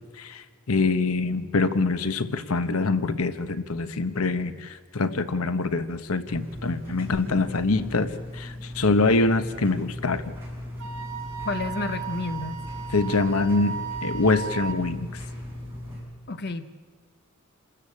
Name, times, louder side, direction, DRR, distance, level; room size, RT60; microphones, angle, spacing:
voice 1, 0.2-10.2 12.9-13.8 14.0-15.2, left 3 dB, 80° left, 11 dB, 1.1 m, -25 dB
sound 1, 6.3-16.0, left 1 dB, 10° right, 7.7 m, -38 dB
Wind instrument woodwind instrument, 10.8-14.8, right 8 dB, 60° right, 2.1 m, -36 dB
voice 2, 11.4-12.6 16.3-16.7, left 3 dB, 50° left, 9 dB, 1.0 m, -30 dB
27.5 x 13.5 x 8.6 m, 1.5 s
head